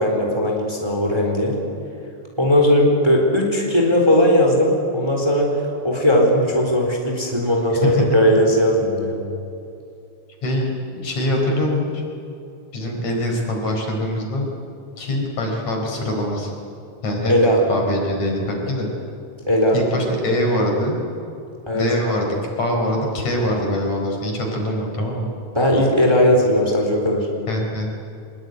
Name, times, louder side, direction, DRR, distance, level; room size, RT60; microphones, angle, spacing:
voice 1, 0.0-1.6 2.4-5.5 5.8-9.2 17.3-17.6 19.5-19.8 21.7-21.8 25.5-27.3, equal, 10° right, 0 dB, 3.8 m, -18 dB
voice 2, 10.4-12.0 12.7-14.5 15.0-16.5 17.0-17.3 17.7-18.9 19.7-21.0 21.7-25.3 27.5-27.9, left 1 dB, 65° left, 1 dB, 5.8 m, -23 dB
25.5 x 21.5 x 9.6 m, 2.6 s
omnidirectional pair, 3.4 m